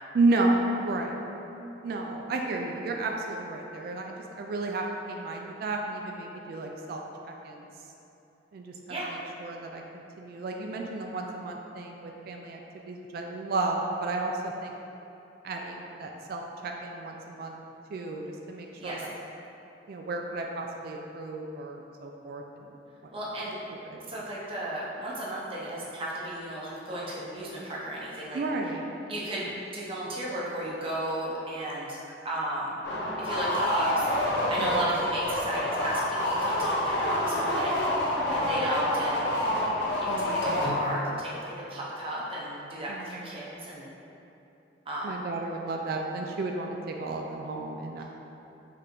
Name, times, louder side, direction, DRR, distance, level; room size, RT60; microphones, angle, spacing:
voice 1, 0.1-1.2 1.8-7.7 8.5-14.7 15.4-17.5 17.9-19.1 19.9-22.4 23.9-24.0 28.3-28.9 34.6-34.9 40.0-41.2 42.9-43.5 45.0-48.0, right 2 dB, 55° right, 1 dB, 0.3 m, -32 dB
voice 2, 23.1-23.6 24.1-28.4 29.1-32.0 32.2-32.7 33.2-34.0 34.5-37.7 38.3-39.4 40.0-43.9 44.9-45.1, right 1 dB, 30° right, -6 dB, 0.7 m, -34 dB
sound 1, 32.8-41.2, left 1 dB, 65° left, 0.6 m, -28 dB
4.9 x 3.4 x 3.0 m, 2.9 s
head